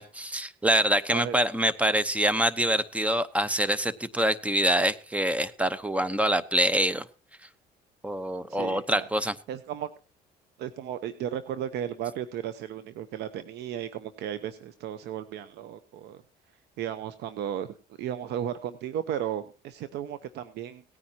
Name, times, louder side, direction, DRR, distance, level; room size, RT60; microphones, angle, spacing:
voice 1, 0.0-7.1 8.0-9.3, right 1 dB, 10° right, 15 dB, 1.0 m, -25 dB
voice 2, 8.5-9.1 9.5-9.9 10.6-16.2 16.8-20.8, right 10 dB, 80° right, 12 dB, 0.9 m, -35 dB
18.0 x 9.7 x 2.9 m, 0.34 s
cardioid pair, 110°, 17 cm